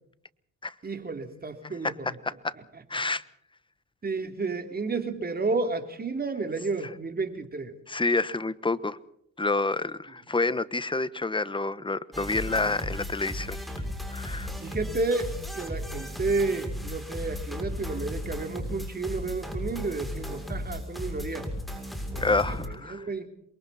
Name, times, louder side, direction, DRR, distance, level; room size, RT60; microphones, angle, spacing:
voice 1, 0.8-1.9 2.7-2.8 4.0-7.7 14.6-21.4 22.1-23.3, right 3 dB, 30° right, 3.4 m, -31 dB
voice 2, 1.8-2.5 2.9-3.2 7.9-9.0 9.4-13.6 14.1-14.5 22.2-23.1, left 3 dB, 15° left, 1.2 m, -28 dB
sound 1, 12.1-22.7, left 1 dB, ahead, 6.8 m, -35 dB
28.5 x 23.0 x 4.3 m
cardioid pair, 90°, 30 cm